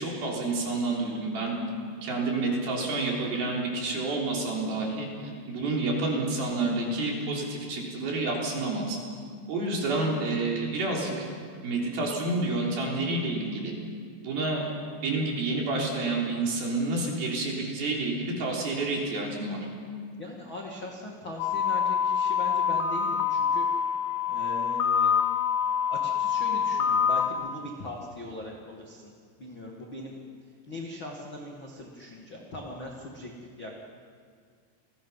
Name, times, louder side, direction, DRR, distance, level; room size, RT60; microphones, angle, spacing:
voice 1, 0.0-1.6 2.0-5.1 5.5-9.0 9.5-11.3 11.6-13.7 14.2-14.6 15.0-19.6, right 2 dB, 50° right, -2 dB, 5.0 m, -29 dB
voice 2, 20.1-23.6 24.3-25.1 25.9-29.1 29.4-30.2 30.7-33.3 33.6-33.7, left 1 dB, 55° left, -1 dB, 1.3 m, -40 dB
sound 1, 21.4-27.3, left 7 dB, 85° left, 3.8 m, -26 dB
29.5 x 20.5 x 5.7 m, 2.1 s
omnidirectional pair, 6.0 m